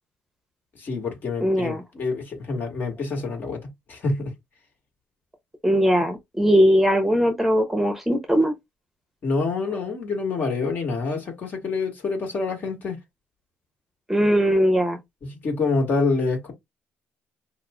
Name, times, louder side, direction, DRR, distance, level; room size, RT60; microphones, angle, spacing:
voice 1, 0.8-4.3 9.2-13.0 15.2-16.5, left 3 dB, 50° left, 1.6 m, -27 dB
voice 2, 1.4-1.8 5.6-8.5 14.1-15.0, equal, 5° right, 0.8 m, -20 dB
5.4 x 2.1 x 2.3 m
cardioid pair, 90°, 4 cm